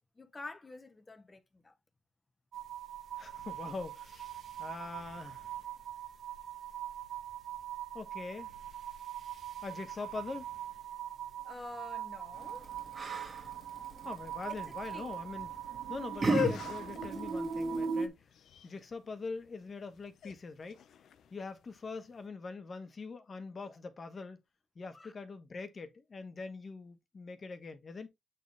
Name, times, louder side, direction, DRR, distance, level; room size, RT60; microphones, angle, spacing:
voice 1, 0.1-1.7 10.9-12.7 14.7-15.1 23.6-23.8 24.9-25.1, left 2 dB, 20° left, 1.3 m, -49 dB
sound 1, 2.5-18.1, right 7 dB, 65° right, 1.2 m, -41 dB
voice 2, 3.2-4.3 4.6-5.5 7.9-8.5 9.6-10.5 14.0-15.5 15.9-18.3 18.6-20.8 21.3-24.4 24.7-28.1, left 4 dB, 35° left, 1.4 m, -43 dB
Yell, 12.3-17.9, right 3 dB, 25° right, 2.0 m, -38 dB
sound 2, 16.1-22.0, left 9 dB, 70° left, 0.8 m, -40 dB
8.2 x 4.1 x 3.5 m
cardioid pair, 120°, 0 cm